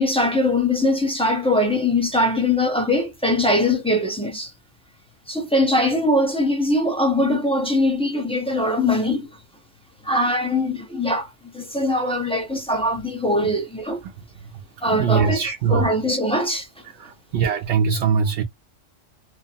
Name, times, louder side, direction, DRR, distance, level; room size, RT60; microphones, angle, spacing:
voice 1, 0.0-4.5 5.3-9.3 10.0-14.0 14.8-16.7, left 1 dB, 5° left, 0.5 m, -21 dB
voice 2, 14.9-15.9 17.0-18.4, right 6 dB, 70° right, 0.8 m, -21 dB
3.0 x 2.0 x 2.7 m
omnidirectional pair, 1.3 m